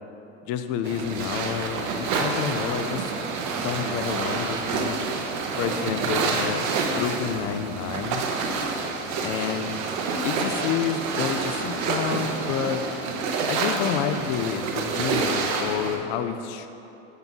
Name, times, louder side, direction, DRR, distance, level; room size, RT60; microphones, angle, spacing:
voice 1, 0.5-3.1 3.5-5.0 5.6-8.2 9.2-9.7 10.2-12.9 13.5-16.7, left 8 dB, 50° left, 9 dB, 0.4 m, -29 dB
sound 1, 0.8-16.0, right 4 dB, 45° right, 0.7 m, -28 dB
5.5 x 4.5 x 3.9 m, 2.9 s
hypercardioid pair, 90°, 39 cm